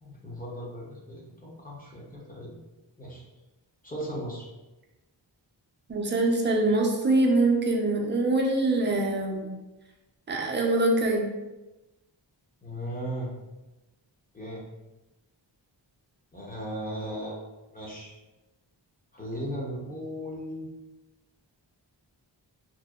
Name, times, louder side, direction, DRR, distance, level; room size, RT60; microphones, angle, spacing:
voice 1, 0.0-2.6 3.0-3.2 3.8-4.4 12.6-13.3 14.3-14.6 16.3-17.4 17.7-18.1 19.1-20.7, equal, 20° left, -4 dB, 0.6 m, -37 dB
voice 2, 5.9-9.5 10.3-11.2, right 2 dB, 25° right, 0 dB, 0.4 m, -24 dB
2.6 x 2.0 x 2.3 m, 1.0 s
wide cardioid pair, 75°, 46 cm